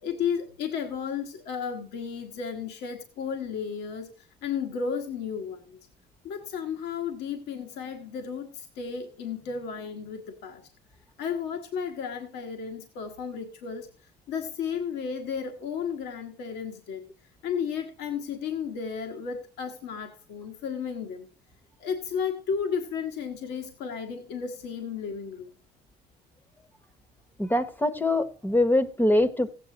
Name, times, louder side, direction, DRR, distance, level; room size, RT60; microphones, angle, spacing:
voice 1, 0.0-5.8 6.2-10.6 11.2-13.9 14.3-17.0 17.4-21.3 21.8-25.5, left 6 dB, 80° left, 1.4 m, -33 dB
voice 2, 27.4-29.5, left 1 dB, 10° left, 0.8 m, -23 dB
16.0 x 8.4 x 2.8 m
cardioid pair, 110°, 17 cm